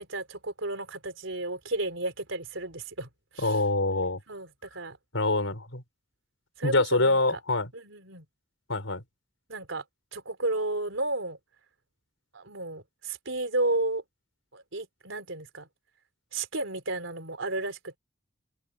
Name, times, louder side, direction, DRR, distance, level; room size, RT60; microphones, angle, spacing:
voice 1, 0.0-3.1 3.3-3.6 4.3-5.0 6.6-7.4 7.7-8.3 9.5-9.8 10.1-11.4 12.3-14.0 14.5-15.7 16.3-18.0, right 2 dB, 85° right, 3.7 m, -33 dB
voice 2, 3.4-4.2 5.1-5.8 6.6-7.7 8.7-9.0, left 2 dB, 85° left, 4.9 m, -25 dB
open air
head